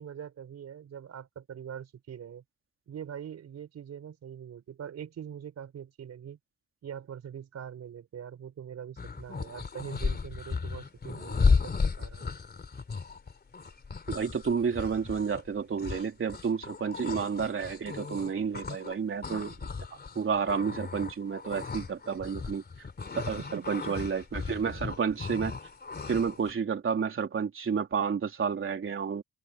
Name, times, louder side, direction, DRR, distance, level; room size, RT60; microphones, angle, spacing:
voice 1, 0.0-2.4 2.9-6.4 6.8-12.3 23.5-24.2 24.7-24.8, right 8 dB, 60° right, 5.8 m, -43 dB
sound 1, 9.0-18.9 19.2-26.5, left 4 dB, 35° left, 3.5 m, -34 dB
voice 2, 14.1-19.6 20.1-22.6 23.1-25.6 26.1-29.2, right 6 dB, 45° right, 3.3 m, -30 dB
open air
cardioid pair, 90°, 30 cm